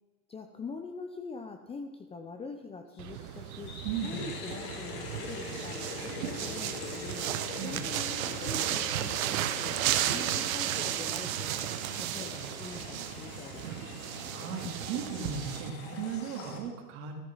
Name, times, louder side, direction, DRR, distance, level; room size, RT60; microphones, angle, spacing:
voice 1, 0.3-3.7 4.0-7.3 7.6-9.8 10.1-11.5 12.0-13.7, left 4 dB, 15° left, 6 dB, 0.7 m, -44 dB
sound 1, 2.9-16.6, left 4 dB, 40° left, 3.1 m, -54 dB
sound 2, 3.0-15.7, right 12 dB, 65° right, 1.1 m, -34 dB
voice 2, 3.8-4.2 7.6-7.9 14.3-17.1, right 7 dB, 50° right, 2 dB, 3.1 m, -36 dB
sound 3, 3.9-16.6, left 5 dB, 65° left, 2.9 m, -43 dB
13.5 x 11.0 x 5.6 m, 1.3 s
hypercardioid pair, 125°, 44 cm